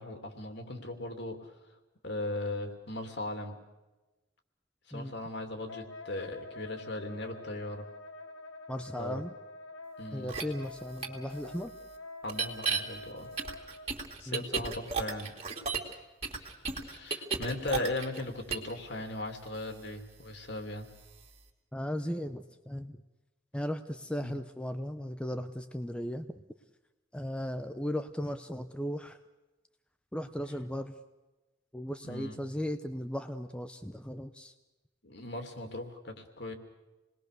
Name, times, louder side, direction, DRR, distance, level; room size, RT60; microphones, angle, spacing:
voice 1, 0.0-1.5 2.0-3.5 4.9-7.9 8.9-9.2 10.0-10.3 12.2-13.3 14.2-15.3 16.4-20.9 24.2-24.4 32.0-32.4 35.0-36.5, left 2 dB, 60° left, 5 dB, 2.9 m, -38 dB
Wind instrument woodwind instrument, 5.7-13.9, left 2 dB, 80° left, 2.1 m, -47 dB
voice 2, 8.7-9.3 10.1-11.7 14.3-14.4 21.7-23.0 23.5-26.3 27.1-29.2 30.1-30.9 31.7-34.5, equal, 5° left, 7 dB, 0.7 m, -36 dB
sound 1, 10.3-10.4 11.0-11.1 12.3-12.8 13.4-15.9 16.2-18.2 18.5-18.7, right 5 dB, 30° right, 2.7 m, -33 dB
28.5 x 20.5 x 6.7 m, 1.1 s
head